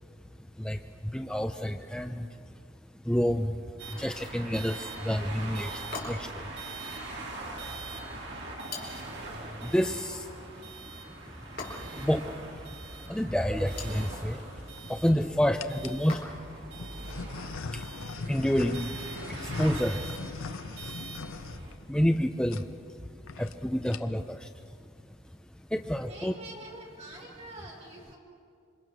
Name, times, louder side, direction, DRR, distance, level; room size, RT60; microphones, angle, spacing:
voice 1, 0.4-2.6 2.9-6.6 6.9-16.4 16.9-20.3 20.7-20.8 21.3-24.9 25.5-26.4, equal, 5° left, 6 dB, 0.5 m, -31 dB
sound 1, 3.8-21.8, right 2 dB, 55° right, 3.1 m, -42 dB
sound 2, 4.0-4.5 5.9-6.4 8.7-9.2 11.6-12.1 13.5-14.1 16.1-16.6, left 4 dB, 45° left, 4.2 m, -41 dB
sound 3, 13.5-13.9 14.6-15.1 15.6-16.1 16.8-22.2 22.5-22.7 23.0-23.1 23.3-23.6 23.8-24.3, left 4 dB, 80° left, 0.6 m, -40 dB
voice 2, 26.1-28.2, right 1 dB, 30° right, -2 dB, 5.0 m, -45 dB
27.0 x 25.5 x 6.2 m, 2.3 s
head